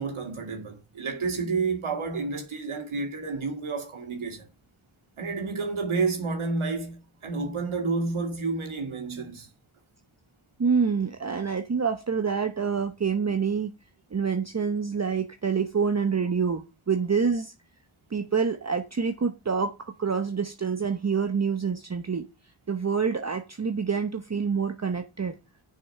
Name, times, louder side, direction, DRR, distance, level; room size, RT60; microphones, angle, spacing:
voice 1, 0.0-4.5 5.2-9.5, right 4 dB, 85° right, 2.2 m, -30 dB
voice 2, 10.6-13.7 14.1-17.5 18.1-22.3 22.7-25.4, right 5 dB, 35° right, 0.9 m, -27 dB
6.6 x 5.9 x 6.5 m
wide cardioid pair, 70°, 48 cm